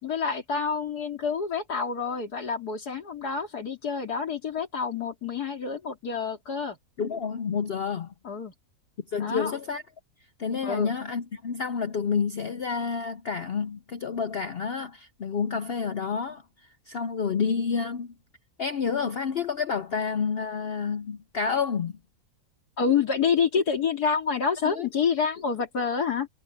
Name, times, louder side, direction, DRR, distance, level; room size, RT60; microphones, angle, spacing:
voice 1, 0.0-6.8 8.2-8.5 9.2-9.5 10.6-10.9 22.8-26.3, left 6 dB, 85° left, 3.3 m, -28 dB
voice 2, 7.0-8.1 9.1-9.8 10.4-18.1 18.6-22.0 24.6-24.9, left 6 dB, 55° left, 0.7 m, -29 dB
omnidirectional pair, 1.6 m